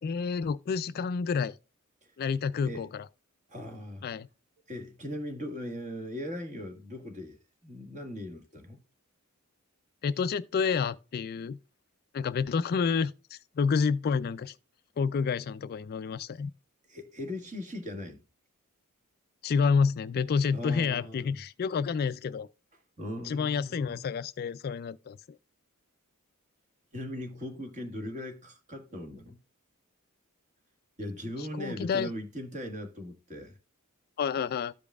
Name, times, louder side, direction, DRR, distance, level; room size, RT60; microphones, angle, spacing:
voice 1, 0.0-1.6 2.2-3.1 4.0-4.3 10.0-11.6 12.1-14.6 15.0-16.5 19.4-22.5 23.2-25.4 31.4-32.1 34.2-34.7, left 5 dB, 45° left, 0.3 m, -29 dB
voice 2, 3.5-4.0 4.7-8.8 16.9-18.2 20.5-21.4 23.0-24.1 26.9-29.4 31.0-33.6, left 1 dB, 35° right, 1.7 m, -39 dB
14.0 x 5.1 x 2.3 m
head